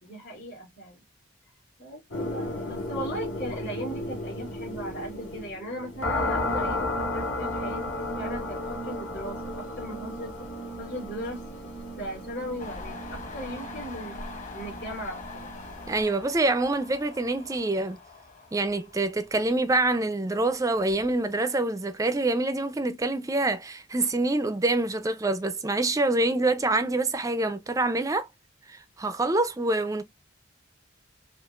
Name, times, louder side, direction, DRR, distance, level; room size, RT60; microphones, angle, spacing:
voice 1, 0.0-1.0 1.8-7.8 8.2-10.3 10.8-11.7 12.0-14.2 14.5-15.5, equal, 50° left, 3.1 m, -38 dB
sound 1, 2.1-16.0, left 1 dB, 85° left, 2.9 m, -34 dB
Train, 12.6-20.0 20.4-21.2, left 4 dB, 35° left, 1.1 m, -44 dB
voice 2, 15.9-18.0 18.5-28.3 28.7-30.0, right 2 dB, 15° right, 0.4 m, -26 dB
5.6 x 2.4 x 2.3 m
head